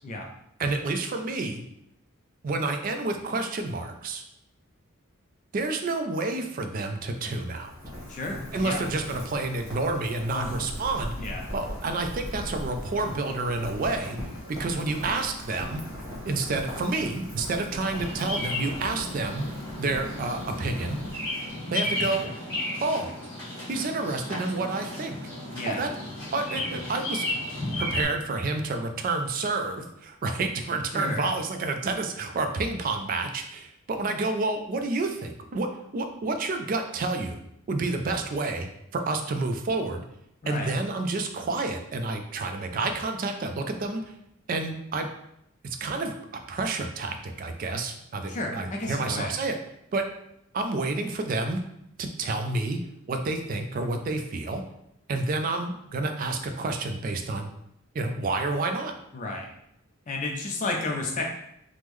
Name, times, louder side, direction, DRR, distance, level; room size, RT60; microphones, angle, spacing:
voice 1, 0.6-1.6 2.4-4.2 5.5-7.7 8.5-11.1 11.5-14.2 14.5-15.8 16.2-21.0 21.7-22.3 22.8-23.1 23.7-25.2 25.7-25.9 26.3-27.3 27.8-35.7 35.9-37.4 37.7-38.7 38.9-40.0 40.5-44.0 44.5-45.1 45.6-46.1 46.5-49.6 49.9-50.0 50.5-51.6 52.0-52.8 53.1-54.6 55.1-57.5 57.9-58.9, right 3 dB, 40° right, 6 dB, 0.3 m, -29 dB
Rain, 7.1-21.7, left 1 dB, 15° right, 1.1 m, -39 dB
voice 2, 8.1-8.9 10.3-10.6 11.2-11.4 25.5-25.9 30.9-31.3 40.4-40.7 48.3-49.3 59.1-59.5 60.1-61.2, left 2 dB, 35° left, 1 dB, 0.4 m, -32 dB
Bird vocalization bird call bird song, 17.9-28.0, left 2 dB, 15° left, 1.5 m, -34 dB
3.5 x 2.0 x 3.0 m, 0.77 s
head